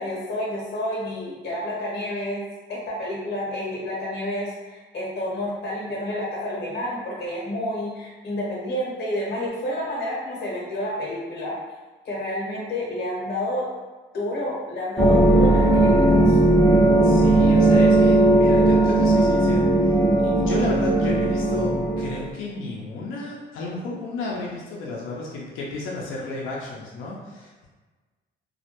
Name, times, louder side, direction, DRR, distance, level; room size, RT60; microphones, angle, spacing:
voice 1, 0.0-2.4 2.7-11.6 12.0-13.7 14.1-16.4, left 1 dB, 55° left, -4 dB, 0.8 m, -29 dB
sound 1, 15.0-22.3, right 2 dB, ahead, 0.6 m, -17 dB
voice 2, 17.0-19.9 20.2-21.7 22.0-27.7, left 2 dB, 85° left, -3 dB, 0.5 m, -32 dB
2.3 x 2.1 x 2.8 m, 1.3 s
cardioid pair, 90°, 20 cm